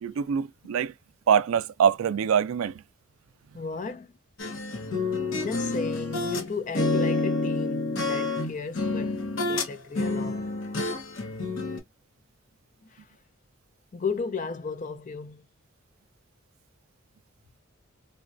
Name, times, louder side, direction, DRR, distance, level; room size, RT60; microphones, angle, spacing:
voice 1, 0.0-0.9 1.3-2.8, right 7 dB, 75° right, 0.3 m, -24 dB
voice 2, 3.5-4.2 5.4-10.6 12.8-13.1 13.9-15.5, left 4 dB, 35° left, 0.5 m, -35 dB
sound 1, 4.4-6.5 6.7-9.7 9.9-11.8, left 2 dB, 70° left, 0.9 m, -28 dB
4.0 x 2.2 x 2.5 m
head